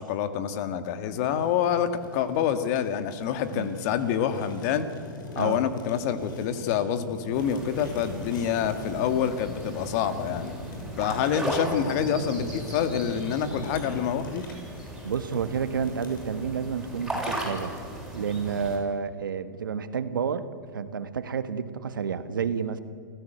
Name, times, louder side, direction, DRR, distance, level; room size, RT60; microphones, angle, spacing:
voice 1, 0.0-4.9 5.4-10.6 11.0-14.5, left 8 dB, 50° left, 10 dB, 1.8 m, -27 dB
Fire, 1.2-16.3, left 1 dB, 75° left, 5.7 m, -41 dB
sound 1, 7.3-18.8, right 1 dB, ahead, 7.6 m, -37 dB
voice 2, 15.0-17.7 18.1-22.8, right 6 dB, 85° right, 11 dB, 1.5 m, -30 dB
28.0 x 15.0 x 8.0 m, 2.3 s
hypercardioid pair, 115°, 11 cm